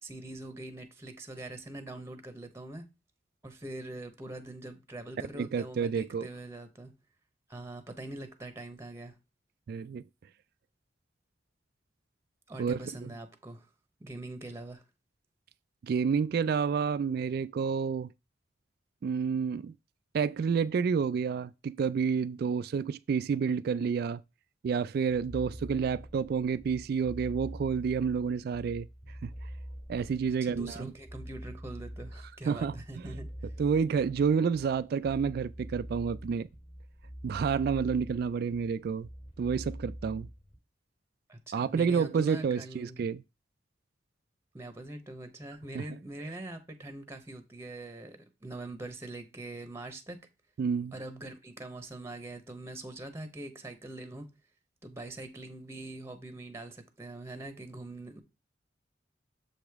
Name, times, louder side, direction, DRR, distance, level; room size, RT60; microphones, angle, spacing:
voice 1, 0.0-2.9 3.4-6.9 7.5-9.2 12.5-13.7 14.0-14.8 30.4-33.3 41.3-43.0 44.5-50.2 50.9-54.3 54.8-58.2, right 2 dB, 15° right, 0.8 m, -43 dB
voice 2, 5.3-6.3 9.7-10.0 12.6-13.1 15.8-18.1 19.0-19.7 20.1-24.2 24.6-28.9 29.2-29.3 29.9-30.9 32.5-32.7 33.6-36.5 37.2-39.1 39.4-40.3 41.5-43.2 45.7-45.8 50.6-50.9, right 6 dB, 55° right, 0.3 m, -29 dB
sound 1, 25.1-40.6, equal, 30° left, 1.6 m, -45 dB
7.1 x 4.9 x 3.5 m
head